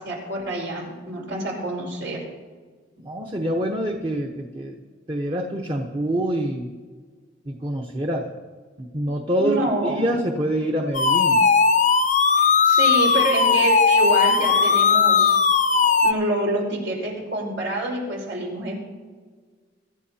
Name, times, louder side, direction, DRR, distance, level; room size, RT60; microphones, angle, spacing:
voice 1, 0.0-2.2 9.4-10.1 12.4-15.4 16.0-18.7, right 1 dB, 85° right, -2 dB, 4.9 m, -27 dB
voice 2, 3.0-4.7 5.1-6.7 7.5-8.3 8.8-11.4, equal, 25° right, 1 dB, 0.9 m, -26 dB
sound 1, 10.9-16.1, left 5 dB, 40° left, 0.6 m, -18 dB
24.5 x 12.5 x 2.9 m, 1.5 s
head